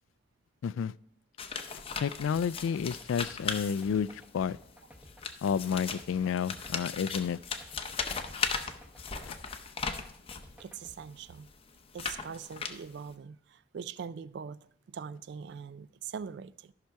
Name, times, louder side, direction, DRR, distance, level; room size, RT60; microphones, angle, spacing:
voice 1, 0.6-0.9 2.0-4.6 5.4-7.4 9.3-9.4, left 7 dB, 85° left, 0.3 m, -30 dB
sound 1, 1.4-4.3 5.0-10.5 11.2-13.1, left 5 dB, 30° left, 0.6 m, -37 dB
sound 2, 2.3-11.0, equal, 5° right, 0.9 m, -54 dB
voice 2, 10.6-11.5 11.9-16.7, right 6 dB, 60° right, 0.3 m, -42 dB
13.0 x 5.8 x 4.6 m
head